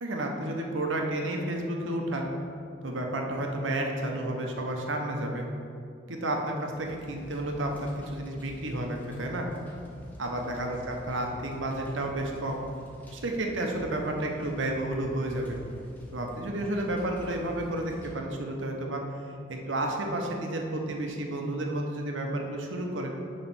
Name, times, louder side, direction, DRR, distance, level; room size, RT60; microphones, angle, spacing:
voice 1, 0.0-2.3 2.8-5.5 6.1-9.5 10.2-12.6 13.1-15.6 16.1-19.0 19.5-23.1, right 1 dB, 90° right, 2 dB, 1.0 m, -31 dB
sound 1, 6.7-18.1, equal, 10° left, 1.0 m, -48 dB
9.3 x 3.3 x 6.1 m, 2.4 s
head